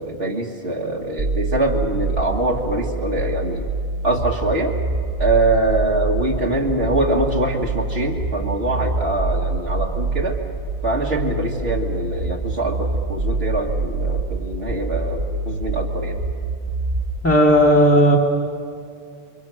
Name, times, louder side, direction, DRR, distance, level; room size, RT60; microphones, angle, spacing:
voice 1, 0.0-3.7 4.0-4.8 5.2-10.4 10.8-16.2, right 2 dB, 75° right, -3 dB, 2.1 m, -23 dB
sound 1, 1.2-17.2, right 3 dB, 50° right, 1.1 m, -25 dB
voice 2, 17.2-18.2, equal, 10° left, -1 dB, 2.2 m, -13 dB
29.5 x 24.0 x 6.2 m, 2.4 s
omnidirectional pair, 1.1 m